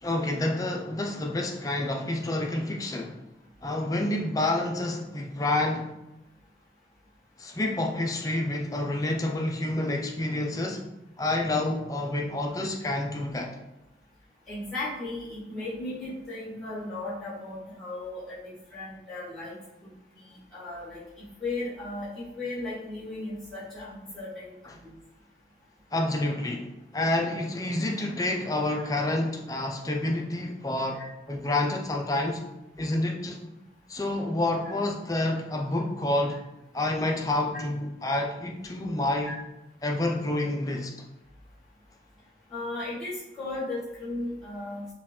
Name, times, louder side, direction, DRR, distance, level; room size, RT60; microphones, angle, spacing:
voice 1, 0.0-3.2 3.6-5.9 7.4-10.8 11.2-13.6 24.7-24.8 25.9-31.0 31.3-32.4 32.8-33.4 33.9-36.4 36.7-39.4 39.8-40.9, left 1 dB, 20° left, 0.4 m, -28 dB
voice 2, 14.5-18.4 18.7-19.9 20.2-21.0 21.4-24.9 30.9-31.1 37.5-37.6 39.2-39.3 42.5-44.8, left 2 dB, 5° left, 1.5 m, -36 dB
4.5 x 2.4 x 3.6 m
head